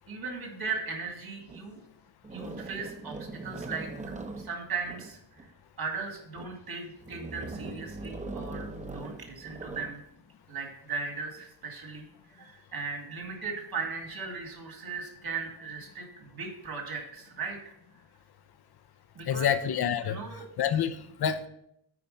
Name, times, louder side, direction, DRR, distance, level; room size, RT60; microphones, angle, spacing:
voice 1, 0.1-1.8 2.3-5.5 5.8-10.0 10.5-17.6 19.1-19.5 20.0-20.8, right 5 dB, 60° right, 2 dB, 2.2 m, -38 dB
sound 1, 1.5-1.6 2.2-5.5 6.1-6.6 7.0-10.0, right 3 dB, 20° right, 0.7 m, -40 dB
voice 2, 19.3-20.2 20.6-21.5, left 8 dB, 65° left, 11 dB, 0.8 m, -27 dB
9.5 x 4.7 x 5.3 m, 0.74 s
wide cardioid pair, 145°, 41 cm